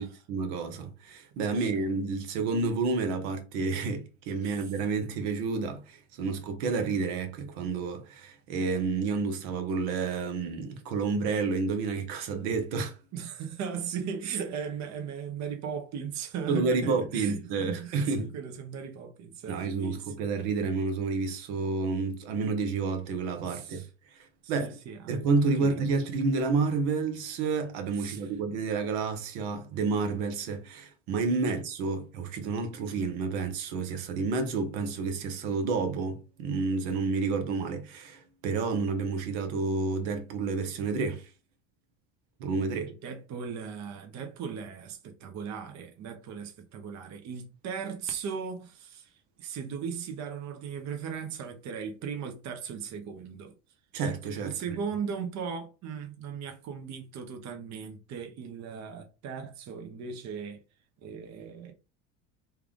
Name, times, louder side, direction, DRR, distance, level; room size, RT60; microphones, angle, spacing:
voice 1, 0.0-13.0 16.5-18.3 19.5-23.8 24.1-24.8 25.1-41.3 42.4-42.9 53.9-54.5, right 4 dB, 70° right, 1.0 m, -30 dB
voice 2, 4.4-4.7 13.1-20.1 23.5-23.9 24.4-25.1 25.6-25.8 28.0-28.3 43.0-53.5 54.4-60.6 61.0-61.7, right 7 dB, 45° right, 0.8 m, -37 dB
3.4 x 2.4 x 3.5 m
supercardioid pair, 95°, 39 cm